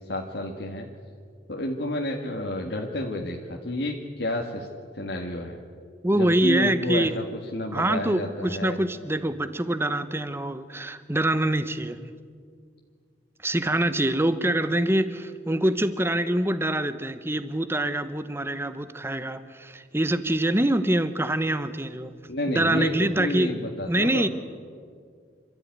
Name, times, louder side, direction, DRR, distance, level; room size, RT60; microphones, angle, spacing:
voice 1, 0.1-0.9 1.5-4.7 4.9-5.6 6.1-7.3 7.5-8.8 22.3-24.3, left 1 dB, 65° left, 0 dB, 1.8 m, -30 dB
voice 2, 6.0-7.2 7.7-12.0 13.4-22.1 22.5-23.5 23.9-24.3, right 1 dB, 15° right, 12 dB, 0.9 m, -25 dB
27.5 x 13.5 x 9.4 m, 2.1 s
head